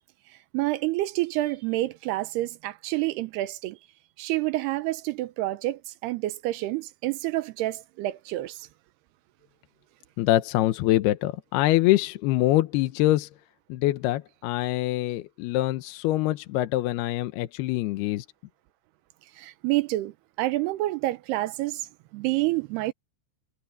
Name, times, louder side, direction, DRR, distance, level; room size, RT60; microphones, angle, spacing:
voice 1, 0.5-3.8 4.2-8.6 19.4-21.8 22.1-22.9, right 17 dB, 80° right, 2.5 m, -28 dB
voice 2, 10.2-13.3 13.7-18.3, left 16 dB, 75° left, 2.6 m, -24 dB
omnidirectional pair, 5.2 m